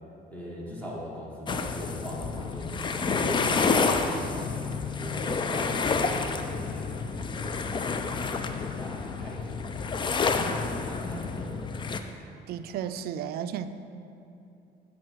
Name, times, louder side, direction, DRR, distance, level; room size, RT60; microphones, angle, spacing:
voice 1, 0.3-4.5 4.8-8.3 8.8-11.7, equal, 10° left, -5 dB, 1.6 m, -40 dB
sound 1, 1.5-12.0, left 4 dB, 30° left, 0.4 m, -29 dB
voice 2, 12.5-13.7, right 9 dB, 65° right, 11 dB, 0.4 m, -33 dB
7.6 x 5.5 x 4.6 m, 2.8 s
cardioid pair, 110°, 17 cm